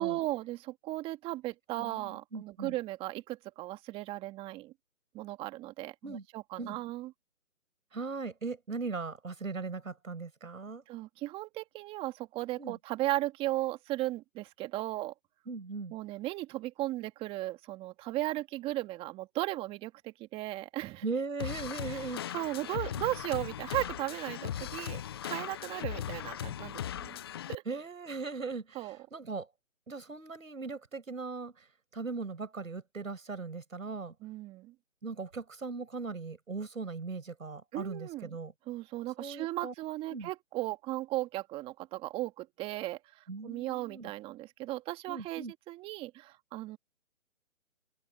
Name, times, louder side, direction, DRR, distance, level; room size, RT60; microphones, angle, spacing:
voice 1, 0.0-4.7 5.1-7.1 10.9-15.1 15.9-21.0 21.9-22.0 22.3-27.2 27.5-27.6 28.7-29.0 34.2-34.7 37.7-38.4 38.7-46.8, right 17 dB, 15° right, 2.0 m, -36 dB
voice 2, 1.8-2.7 6.0-6.2 6.6-6.8 7.9-10.8 12.6-12.8 15.5-16.0 21.0-22.2 22.7-22.8 27.7-29.5 29.9-31.7 31.9-34.1 35.0-38.5 39.2-39.7 40.1-40.3 43.3-44.1 45.1-45.5, right 4 dB, 75° right, 6.9 m, -39 dB
sound 1, 21.4-27.6, left 10 dB, 20° left, 0.8 m, -38 dB
figure-of-eight pair, 150°, 41 cm